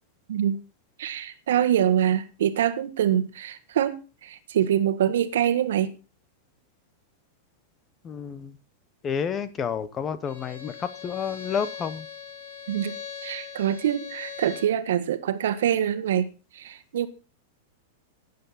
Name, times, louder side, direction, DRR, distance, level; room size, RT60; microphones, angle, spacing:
voice 1, 1.0-4.0 4.2-5.9 12.7-12.9 13.2-16.3 16.5-17.1, right 10 dB, 70° right, 12 dB, 1.4 m, -24 dB
voice 2, 8.0-8.6 9.0-12.1, left 7 dB, 15° left, 15 dB, 0.8 m, -30 dB
Bowed string instrument, 10.2-14.8, left 7 dB, 45° left, 6.6 m, -40 dB
12.0 x 9.3 x 4.1 m, 0.32 s
supercardioid pair, 175°, 0 cm